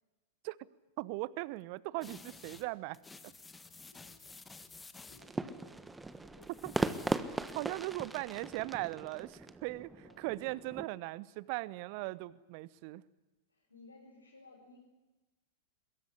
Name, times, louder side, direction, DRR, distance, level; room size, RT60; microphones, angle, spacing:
voice 1, 1.0-3.0 6.6-6.7 7.5-9.9 10.2-13.0, right 20 dB, 45° right, 20 dB, 0.9 m, -39 dB
sound 1, 2.0-2.7 2.9-5.3 6.4-7.5, left 3 dB, 10° left, 1.7 m, -52 dB
voice 2, 3.9-4.4 5.1-5.9 6.2-6.8 8.1-8.3 9.9-10.3 13.5-14.8, left 2 dB, 80° left, -2 dB, 5.5 m, -59 dB
sound 2, 5.2-10.9, right 2 dB, 10° right, 1.3 m, -39 dB
22.5 x 22.0 x 9.9 m, 1.1 s
figure-of-eight pair, 95°, 0 cm